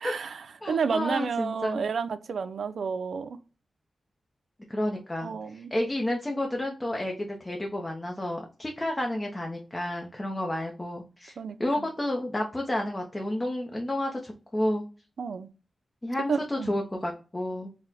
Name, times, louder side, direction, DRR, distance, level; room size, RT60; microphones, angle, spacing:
voice 1, 0.0-3.4 5.2-5.7 11.4-11.9 15.2-15.5 16.3-16.7, right 6 dB, 80° right, 0.3 m, -31 dB
voice 2, 0.6-1.8 4.7-14.8 16.0-17.7, left 1 dB, 15° left, 0.5 m, -31 dB
4.1 x 2.0 x 3.9 m
wide cardioid pair, 135°, 0 cm